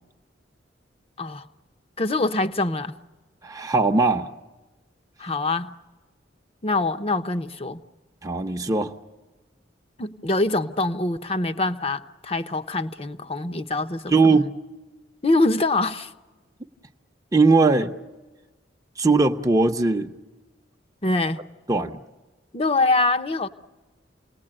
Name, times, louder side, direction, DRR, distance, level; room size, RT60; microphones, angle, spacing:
voice 1, 2.0-2.9 5.2-5.7 6.6-7.8 10.0-14.1 15.2-16.1 21.0-21.4 22.5-23.5, left 2 dB, 35° left, 0.9 m, -24 dB
voice 2, 3.4-4.3 8.2-8.9 14.1-14.5 17.3-17.9 19.0-20.1 21.7-22.0, right 3 dB, 20° right, 0.8 m, -19 dB
28.5 x 19.5 x 8.9 m
head